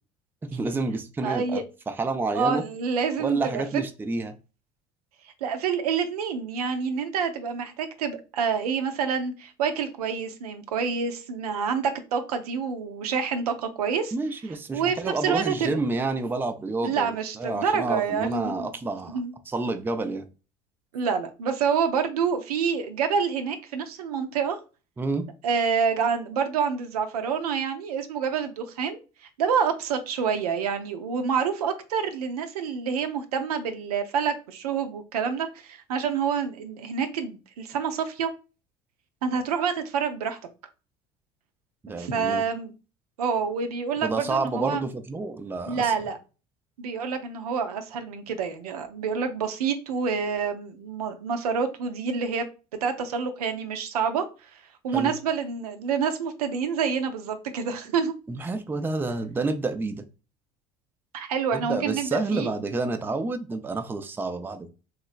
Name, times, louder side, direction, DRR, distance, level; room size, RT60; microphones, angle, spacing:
voice 1, 0.4-2.6 3.2-4.4 14.1-20.3 25.0-25.3 41.8-42.4 44.0-45.9 54.9-55.1 58.3-60.0 61.5-64.7, right 3 dB, 10° right, 0.4 m, -29 dB
voice 2, 1.2-1.6 2.3-3.6 5.4-14.1 14.7-15.8 16.8-18.7 19.1-19.3 20.9-24.6 25.4-29.0 29.4-38.3 39.2-40.4 42.0-42.7 43.2-44.8 45.7-46.2 46.8-52.5 52.8-54.2 54.8-58.1 61.1-62.5, right 6 dB, 80° right, 0.5 m, -27 dB
3.1 x 2.9 x 2.4 m
hypercardioid pair, 65°, 19 cm